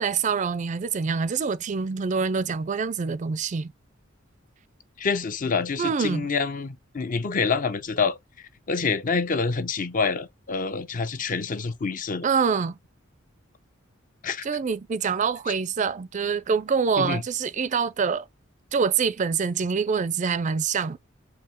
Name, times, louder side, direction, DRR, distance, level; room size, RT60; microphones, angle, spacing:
voice 1, 0.0-3.7 5.8-6.3 12.2-12.8 14.4-18.3 18.7-21.0, right 5 dB, 40° right, 0.4 m, -25 dB
voice 2, 5.0-8.2 8.7-12.2 14.2-14.5 17.0-17.2, left 5 dB, 45° left, 0.6 m, -27 dB
4.7 x 3.1 x 3.5 m
head